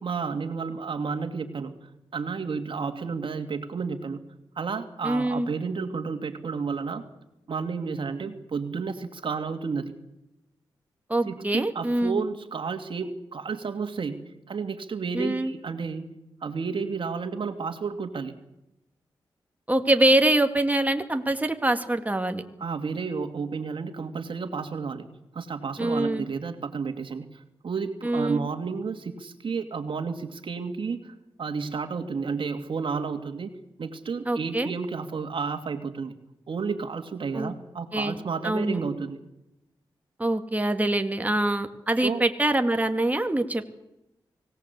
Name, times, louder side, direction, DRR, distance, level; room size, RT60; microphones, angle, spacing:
voice 1, 0.0-1.7 2.1-4.2 4.6-7.0 7.5-9.9 11.3-14.2 14.5-16.1 16.4-18.3 22.6-25.1 25.3-33.5 33.8-36.1 36.5-39.2 42.0-42.2, right 5 dB, 65° right, 7 dB, 2.5 m, -31 dB
voice 2, 5.0-5.5 11.1-12.2 15.1-15.5 19.7-22.4 25.8-26.2 28.0-28.5 34.3-34.7 37.3-37.5 37.9-38.8 40.2-43.7, right 1 dB, 15° right, 6 dB, 2.3 m, -24 dB
25.0 x 18.0 x 8.4 m, 0.91 s
cardioid pair, 45°, 9 cm